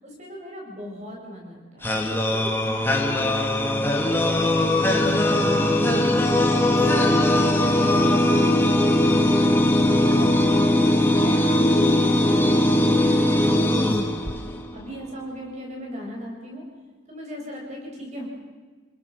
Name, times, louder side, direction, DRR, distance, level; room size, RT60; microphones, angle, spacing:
voice 1, 0.0-4.4 4.8-6.2 6.7-9.6 10.0-10.3 10.6-14.3 14.7-16.6 17.1-18.3, equal, 35° right, -1 dB, 7.9 m, -37 dB
sound 1, 1.8-14.8, left 1 dB, 10° left, 2.2 m, -20 dB
29.5 x 22.5 x 6.5 m, 1.4 s
head